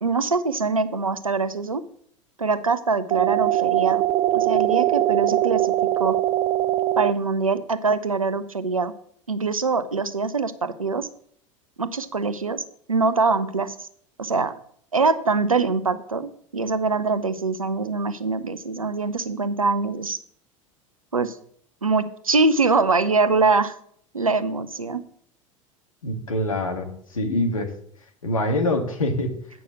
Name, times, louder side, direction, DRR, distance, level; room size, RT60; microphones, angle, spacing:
voice 1, 0.0-1.8 2.4-4.0 4.3-5.7 6.0-6.2 7.0-8.9 9.3-11.1 11.8-13.7 14.2-14.6 14.9-20.2 21.1-21.4 21.8-23.7 24.1-25.0, right 4 dB, 85° right, 13 dB, 0.7 m, -23 dB
sound 1, 3.1-7.1, right 13 dB, 30° right, 0.4 m, -21 dB
voice 2, 26.0-27.7 28.2-29.3, left 1 dB, 75° left, 5 dB, 1.6 m, -25 dB
8.7 x 6.3 x 6.7 m, 0.62 s
figure-of-eight pair, 75°, 17 cm